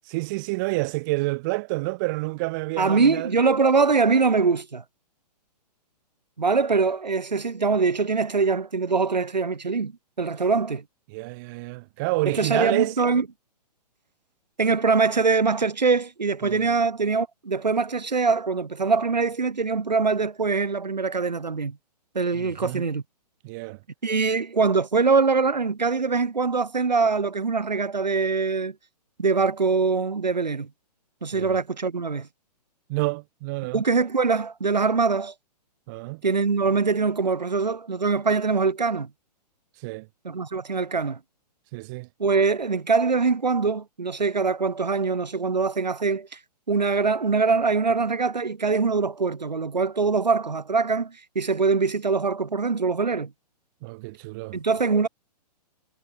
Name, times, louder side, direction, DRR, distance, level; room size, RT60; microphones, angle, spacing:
voice 1, 0.1-3.3 11.1-12.9 16.4-16.7 22.4-22.8 23.4-23.8 31.3-31.5 32.9-33.8 35.9-36.2 39.8-40.1 41.7-42.1 53.8-54.6, right 25 dB, 30° right, 0.5 m, -29 dB
voice 2, 2.8-4.8 6.4-9.9 10.2-10.8 12.3-13.2 14.6-21.8 22.1-23.0 24.0-28.7 29.2-30.7 31.2-32.3 33.7-35.3 36.2-39.1 40.2-41.2 42.2-46.3 46.7-53.3 54.5-55.1, right 4 dB, 85° right, 1.3 m, -23 dB
figure-of-eight pair, 120°, 21 cm